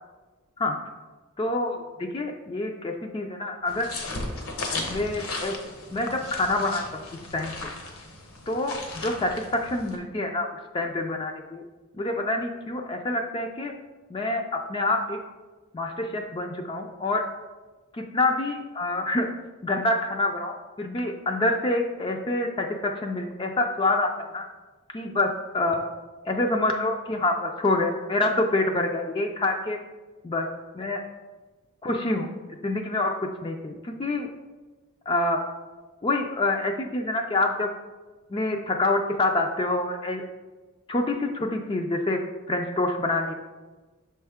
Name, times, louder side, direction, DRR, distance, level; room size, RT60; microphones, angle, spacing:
voice 1, 1.4-3.9 4.9-5.5 5.9-7.0 7.3-7.5 8.5-10.5 10.7-11.6 11.9-13.7 14.1-15.2 15.7-17.3 17.9-19.3 19.6-24.5 24.9-25.9 26.3-29.8 30.2-30.5 30.8-31.0 31.8-32.3 32.6-33.1 33.4-34.3 35.1-35.5 36.0-37.7 38.3-40.2 40.9-42.2 42.5-43.3, left 2 dB, 25° left, 3 dB, 0.3 m, -26 dB
sound 1, 3.7-10.0, left 2 dB, 75° left, 1.0 m, -36 dB
6.4 x 4.3 x 3.5 m, 1.2 s
head